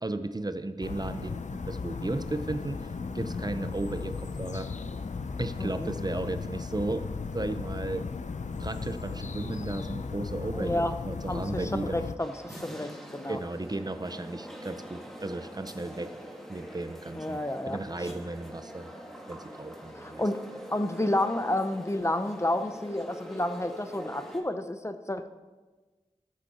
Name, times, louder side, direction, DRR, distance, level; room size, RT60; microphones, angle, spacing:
voice 1, 0.0-4.7 5.4-8.1 8.6-12.0 13.3-16.1 16.5-17.4 17.7-18.9 19.3-20.2, right 2 dB, 30° right, 10 dB, 0.6 m, -35 dB
sound 1, 0.8-12.2, left 4 dB, 70° left, 0.5 m, -36 dB
voice 2, 5.6-5.9 10.5-10.9 11.3-13.4 17.1-17.8 19.9-20.4 20.7-25.3, left 1 dB, 20° left, 9 dB, 0.6 m, -30 dB
sound 2, 12.2-24.4, equal, 5° left, 1.8 m, -44 dB
13.5 x 7.0 x 4.3 m, 1.3 s
wide cardioid pair, 60°, 13 cm